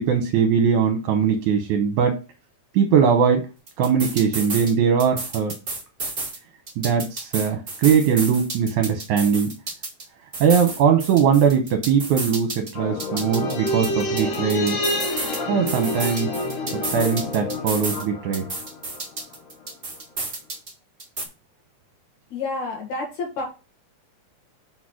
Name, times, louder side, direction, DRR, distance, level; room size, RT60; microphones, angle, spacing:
voice 1, 0.0-2.1 2.7-3.4 3.8-5.5 6.8-9.5 10.4-14.8 15.5-16.3 16.8-18.5, right 7 dB, 75° right, 4 dB, 2.2 m, -20 dB
sound 1, 3.7-4.7 5.0-6.4 6.7-10.0 10.3-12.7 13.0-15.4 15.7-18.0 18.3-20.7 21.0-21.2, right 3 dB, 25° right, 1.3 m, -31 dB
sound 2, 12.7-19.3 19.6-19.7, left 1 dB, 85° left, 2.8 m, -28 dB
voice 2, 22.3-23.4, left 3 dB, 70° left, -2 dB, 3.0 m, -29 dB
6.2 x 4.0 x 6.2 m, 0.32 s
omnidirectional pair, 3.6 m